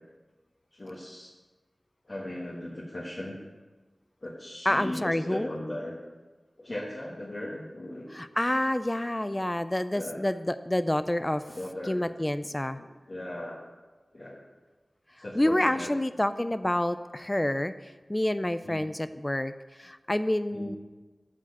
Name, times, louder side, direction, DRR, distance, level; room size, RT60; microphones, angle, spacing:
voice 1, 0.7-1.3 2.0-3.4 4.2-6.0 6.6-8.1 9.3-9.5 9.9-10.2 11.5-12.2 12.7-13.6 14.1-14.4 15.2-15.9 18.6-18.8 20.5-20.7, left 1 dB, 50° left, -4 dB, 1.4 m, -38 dB
voice 2, 4.7-5.5 8.1-11.4 11.9-12.8 15.4-19.5 19.8-20.8, left 1 dB, 20° left, 12 dB, 0.3 m, -28 dB
8.8 x 4.7 x 7.2 m, 1.3 s
wide cardioid pair, 65°, 0 cm